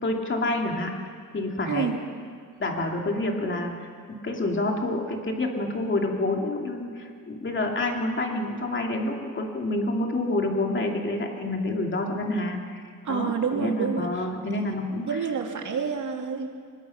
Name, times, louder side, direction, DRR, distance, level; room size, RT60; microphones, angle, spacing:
voice 1, 0.0-0.9 1.3-1.9 2.6-12.8 13.1-15.2, left 2 dB, 35° left, 1 dB, 2.7 m, -28 dB
voice 2, 1.7-2.0 13.0-14.1 15.1-16.5, right 6 dB, 60° right, 3 dB, 2.5 m, -28 dB
24.0 x 20.5 x 5.9 m, 2.1 s
wide cardioid pair, 135°, 34 cm